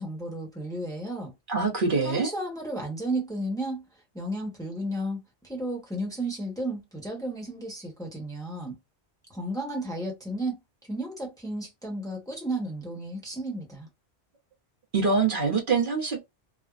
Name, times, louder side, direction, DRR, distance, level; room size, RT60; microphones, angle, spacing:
voice 1, 0.0-1.3 2.0-3.8 4.1-8.7 9.3-10.6 10.9-13.9, right 1 dB, 5° left, 1.0 m, -33 dB
voice 2, 1.5-2.3 14.9-16.2, right 4 dB, 50° right, 1.0 m, -24 dB
3.3 x 2.1 x 2.4 m
omnidirectional pair, 1.1 m